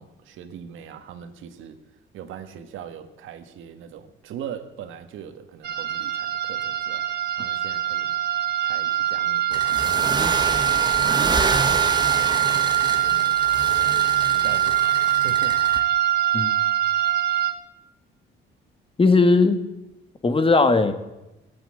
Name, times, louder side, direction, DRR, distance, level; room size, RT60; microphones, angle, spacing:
voice 1, 0.0-1.8 2.1-7.1 7.4-8.2 8.6-10.7 11.0-13.5 14.2-15.9, right 8 dB, 85° right, 9 dB, 1.6 m, -41 dB
sound 1, 5.6-17.5, right 11 dB, 55° right, 1.5 m, -23 dB
sound 2, 9.5-15.8, right 3 dB, 20° right, 1.7 m, -28 dB
voice 2, 19.0-19.6 20.2-20.9, left 3 dB, 25° left, 10 dB, 1.8 m, -17 dB
18.0 x 8.7 x 8.7 m, 0.99 s
cardioid pair, 90°, 20 cm